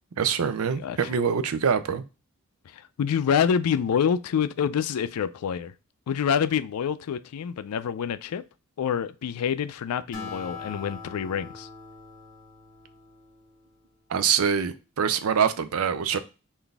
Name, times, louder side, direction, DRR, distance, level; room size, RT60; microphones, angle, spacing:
voice 1, 0.2-2.0 14.1-16.2, right 7 dB, 75° right, 0.4 m, -24 dB
voice 2, 3.0-5.7 6.1-8.4 8.8-11.7, left 7 dB, 90° left, 0.4 m, -26 dB
Acoustic guitar, 10.1-13.8, left 4 dB, 35° left, 0.9 m, -42 dB
3.9 x 2.6 x 3.4 m
head